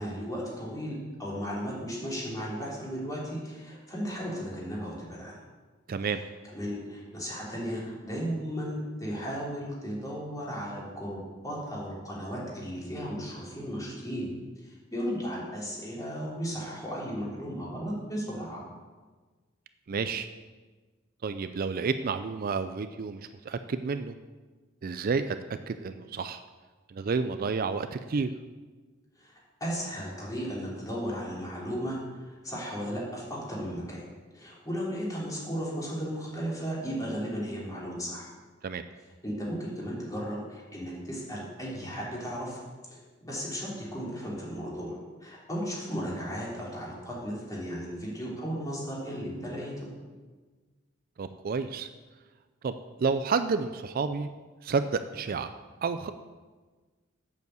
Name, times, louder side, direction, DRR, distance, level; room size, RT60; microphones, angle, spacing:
voice 1, 0.0-5.3 6.1-14.3 14.6-18.6 29.2-29.3 29.6-34.0 34.3-38.3 39.2-42.6 42.9-49.9, equal, 20° left, -5 dB, 3.2 m, -35 dB
voice 2, 5.9-6.2 19.9-20.3 21.2-23.2 23.5-24.1 24.8-25.4 25.7-26.4 26.9-28.3 38.6-38.8 51.2-51.9 52.6-52.7 53.0-54.3 54.6-55.5 55.8-56.1, right 5 dB, 50° right, 10 dB, 0.4 m, -30 dB
8.2 x 7.0 x 7.9 m, 1.3 s
head